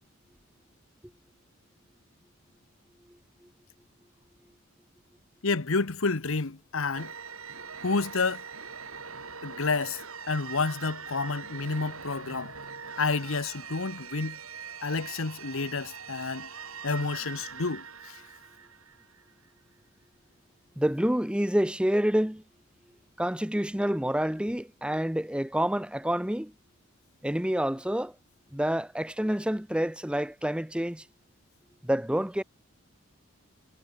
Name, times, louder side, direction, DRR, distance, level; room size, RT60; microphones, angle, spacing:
voice 1, 5.4-7.1 7.8-8.4 9.4-12.5 13.0-14.4 14.8-16.5 16.8-18.2, left 4 dB, 75° left, 1.1 m, -30 dB
sound 1, 6.9-19.5, right 6 dB, 85° right, 7.9 m, -43 dB
voice 2, 20.8-22.4 23.2-26.5 27.2-28.1 28.5-31.0 31.8-32.4, equal, 5° right, 0.7 m, -28 dB
head